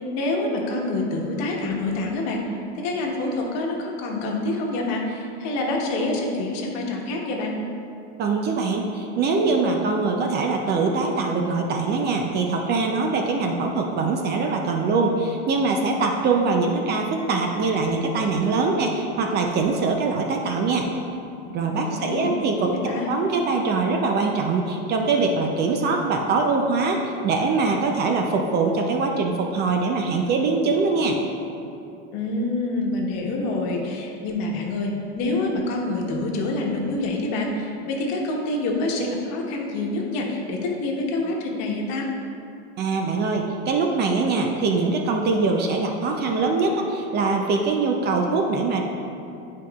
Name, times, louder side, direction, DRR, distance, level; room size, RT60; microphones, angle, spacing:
voice 1, 0.1-7.6 21.8-22.3 22.6-23.1 32.1-42.1, left 2 dB, 55° left, -1 dB, 1.2 m, -27 dB
voice 2, 8.2-20.9 21.5-22.8 23.0-31.2 42.8-48.8, right 3 dB, 30° right, 2 dB, 0.5 m, -23 dB
10.5 x 4.6 x 2.4 m, 2.7 s
supercardioid pair, 130°, 33 cm